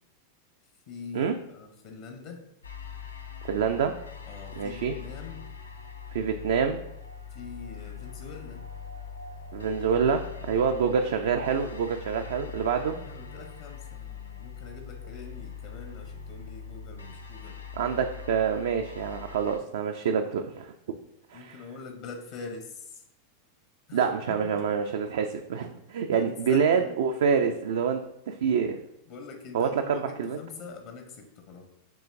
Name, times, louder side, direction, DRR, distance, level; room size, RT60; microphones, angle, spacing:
voice 1, 0.9-2.4 4.2-5.5 7.3-8.6 12.9-17.6 21.3-23.0 23.9-24.8 25.6-25.8 26.1-27.0 29.1-31.6, left 5 dB, 60° left, 4 dB, 0.8 m, -44 dB
sound 1, 2.6-19.6, left 6 dB, 90° left, 0.4 m, -42 dB
voice 2, 3.4-4.0 4.6-4.9 6.1-6.8 9.5-13.0 17.8-20.7 21.3-21.5 23.9-28.8 29.5-30.4, right 6 dB, 70° right, 5 dB, 0.3 m, -26 dB
6.8 x 3.1 x 2.5 m, 0.78 s
hypercardioid pair, 95°, 0 cm